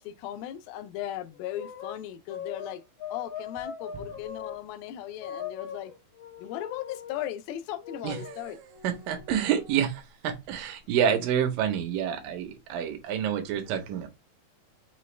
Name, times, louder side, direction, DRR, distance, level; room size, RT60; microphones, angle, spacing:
voice 1, 0.0-2.8 3.1-5.9 6.4-8.6, left 12 dB, 80° left, 2.2 m, -37 dB
sound 1, 1.3-4.6 5.2-7.2 7.8-9.8, left 7 dB, 65° left, 1.5 m, -41 dB
voice 2, 8.8-14.1, right 9 dB, 75° right, 2.2 m, -28 dB
5.8 x 2.2 x 3.1 m
omnidirectional pair, 4.4 m